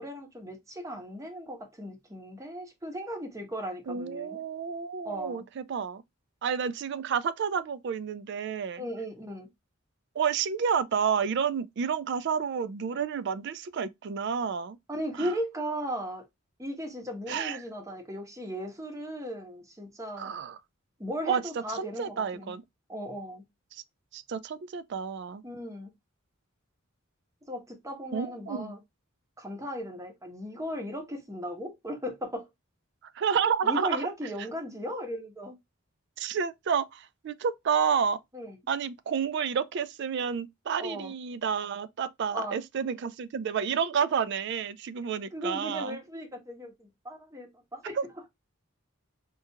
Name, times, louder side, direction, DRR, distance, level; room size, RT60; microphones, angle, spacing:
voice 1, 0.0-4.4 5.0-5.4 8.8-9.5 14.9-16.2 16.6-20.3 21.0-22.6 22.9-23.4 25.4-25.9 27.5-28.8 29.4-32.5 33.6-35.6 38.3-38.6 40.8-41.1 42.3-42.6 45.3-48.0, equal, 15° right, 0.8 m, -37 dB
voice 2, 3.9-6.0 6.4-8.8 10.2-14.8 15.2-15.3 17.3-17.6 20.2-20.6 21.3-21.4 21.7-22.6 24.1-25.4 28.1-28.8 33.2-34.1 36.2-38.2 38.7-46.0 48.0-48.1, right 7 dB, 55° right, 0.3 m, -30 dB
4.4 x 2.4 x 2.7 m
head